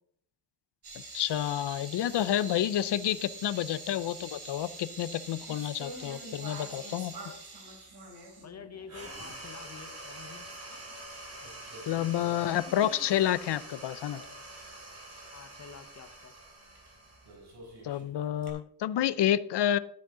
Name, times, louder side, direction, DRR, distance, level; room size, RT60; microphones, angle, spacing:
sound 1, 0.8-9.4 9.7-9.8 10.3-11.0 11.3-13.7 14.1-14.3 16.8-16.9 17.2-18.5, right 2 dB, 70° right, 3.3 m, -46 dB
voice 1, 1.1-7.2 11.9-14.2 17.8-19.8, left 11 dB, 85° left, 16 dB, 0.6 m, -29 dB
voice 2, 8.4-10.5 15.3-16.3, left 6 dB, 40° left, 10 dB, 0.9 m, -48 dB
sound 2, 8.9-17.8, right 1 dB, 40° right, 3.1 m, -46 dB
13.0 x 9.2 x 3.8 m, 0.70 s
wide cardioid pair, 180°, 40 cm